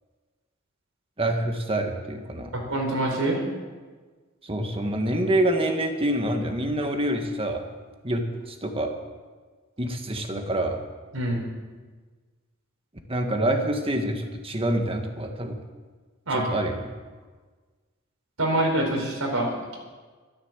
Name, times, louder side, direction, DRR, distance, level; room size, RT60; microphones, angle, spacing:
voice 1, 1.2-2.5 4.4-7.6 8.0-8.9 9.8-10.8 13.1-15.6 16.3-16.8, right 1 dB, 25° right, 4 dB, 1.7 m, -26 dB
voice 2, 2.5-3.4 11.1-11.4 16.3-16.4 18.4-19.8, right 1 dB, 90° right, 0 dB, 4.6 m, -25 dB
13.5 x 13.0 x 7.5 m, 1.4 s
head